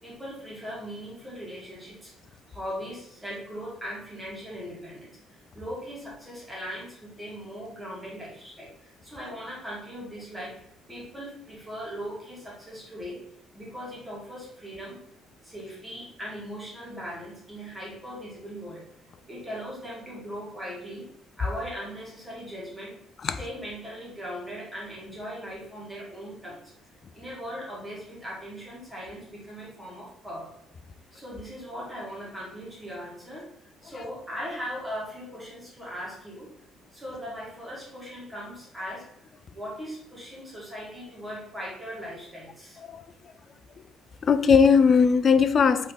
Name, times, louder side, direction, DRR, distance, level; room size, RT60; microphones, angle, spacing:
voice 1, 0.0-13.2 13.5-15.0 15.4-18.8 19.3-21.1 21.4-26.7 27.1-30.5 31.1-33.5 33.8-36.5 36.9-39.1 39.5-42.8, equal, 10° right, 2.0 m, -39 dB
voice 2, 44.2-45.9, left 6 dB, 35° left, 0.4 m, -19 dB
5.5 x 3.5 x 5.7 m
cardioid pair, 160°, 0 cm